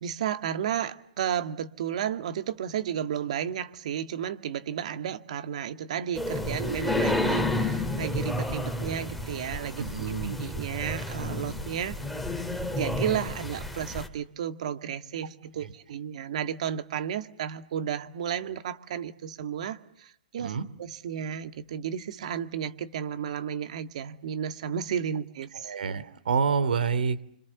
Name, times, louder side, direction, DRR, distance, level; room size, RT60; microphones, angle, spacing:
voice 1, 0.0-12.0 12.7-20.5 20.8-25.8, right 9 dB, 50° right, 9 dB, 2.1 m, -33 dB
sound 1, 6.2-14.1, left 2 dB, ahead, 2.3 m, -31 dB
voice 2, 9.8-10.4 15.6-15.7 20.4-20.6 25.6-27.2, right 5 dB, 85° right, 13 dB, 2.8 m, -28 dB
30.0 x 26.5 x 7.3 m, 0.69 s
hypercardioid pair, 165°, 5 cm